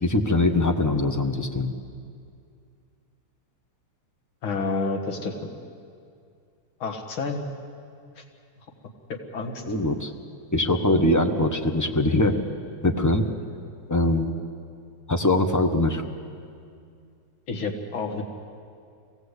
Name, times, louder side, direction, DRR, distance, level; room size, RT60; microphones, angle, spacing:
voice 1, 0.0-1.7 9.7-10.1 10.5-12.3 12.8-13.2 13.9-14.3 15.1-16.0, left 2 dB, 15° left, 5 dB, 0.7 m, -22 dB
voice 2, 4.4-5.3 6.8-7.5 8.2-8.3 9.3-9.6 17.5-18.2, left 3 dB, 80° left, 3 dB, 2.5 m, -29 dB
25.0 x 17.0 x 8.2 m, 2.3 s
omnidirectional pair, 2.2 m